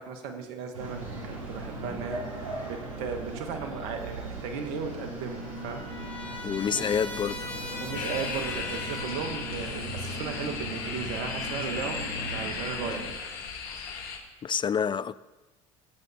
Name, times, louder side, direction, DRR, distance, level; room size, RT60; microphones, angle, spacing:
voice 1, 0.0-2.2 2.6-5.8 6.7-6.8 7.8-13.1, right 6 dB, 70° right, 1.5 m, -36 dB
sound 1, 0.7-13.1, right 2 dB, 85° right, 4.2 m, -38 dB
Trumpet, 4.8-9.6, left 2 dB, 10° left, 4.2 m, -40 dB
voice 2, 6.4-7.5 14.4-15.2, left 7 dB, 30° left, 0.4 m, -28 dB
sound 2, 7.9-14.2, left 6 dB, 60° left, 2.6 m, -36 dB
19.0 x 8.3 x 4.3 m
hypercardioid pair, 75°, 17 cm